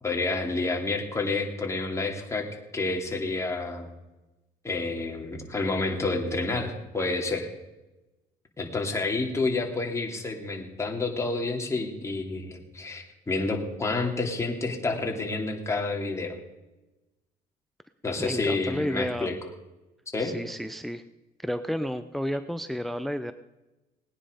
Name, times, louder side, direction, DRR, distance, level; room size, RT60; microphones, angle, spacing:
voice 1, 0.0-2.5 2.7-3.9 4.6-7.5 8.6-16.4 18.0-19.3 20.1-20.4, left 3 dB, 15° left, 1 dB, 2.7 m, -29 dB
voice 2, 18.2-19.3 20.2-21.0 21.4-23.3, equal, ahead, 11 dB, 0.6 m, -31 dB
18.5 x 9.8 x 5.1 m, 1.0 s
cardioid pair, 110°, 17 cm